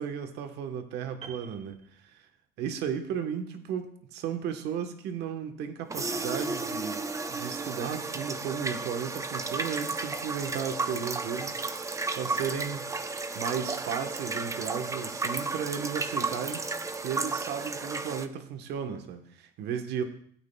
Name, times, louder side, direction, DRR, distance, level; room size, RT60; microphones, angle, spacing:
voice 1, 0.0-2.3 2.6-11.9 12.1-12.9 13.3-20.0, right 7 dB, 80° right, 6 dB, 1.1 m, -35 dB
Piano, 1.2-2.7 2.9-3.2, right 6 dB, 45° right, 1.6 m, -49 dB
sound 1, 5.9-18.3, right 3 dB, 20° right, 0.6 m, -33 dB
16.5 x 8.8 x 2.3 m, 0.62 s
cardioid pair, 110°, 17 cm